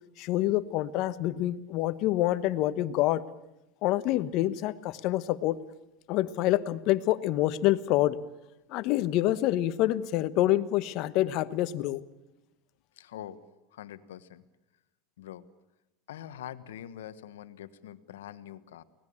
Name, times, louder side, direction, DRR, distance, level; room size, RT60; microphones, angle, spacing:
voice 1, 0.2-3.2 3.8-5.6 6.1-8.2 8.7-12.0, left 15 dB, 60° left, 15 dB, 1.2 m, -27 dB
voice 2, 13.0-13.4 13.7-14.4 15.2-15.4 16.1-18.8, left 11 dB, 85° left, 13 dB, 1.3 m, -44 dB
24.5 x 18.5 x 8.8 m, 0.94 s
hypercardioid pair, 100°, 0 cm